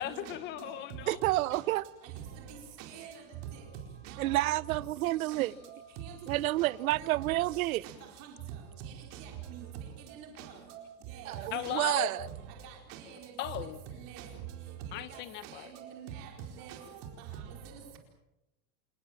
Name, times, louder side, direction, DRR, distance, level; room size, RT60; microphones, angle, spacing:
voice 1, 0.0-1.2 11.5-12.1 13.4-13.8 14.9-15.7, left 13 dB, 25° left, 1.2 m, -37 dB
voice 2, 1.1-1.8 4.2-5.5 6.3-7.8 11.3-12.2, right 17 dB, 80° right, 0.7 m, -29 dB
voice 3, 2.3-3.2 3.5-3.6 4.0-4.2 5.3-5.5 6.0-6.1 6.6-6.7 7.0-7.1 7.8-7.9 8.2-8.3 8.9-9.7 10.2-10.8 11.1-12.2 12.6-13.2 14.0-14.3 15.1-16.3 16.6-16.8 17.6-18.0, right 8 dB, 40° right, 4.6 m, -46 dB
Wind instrument woodwind instrument, 3.1-7.6, left 6 dB, 55° left, 7.9 m, -66 dB
28.0 x 19.5 x 7.4 m
supercardioid pair, 180°, 42 cm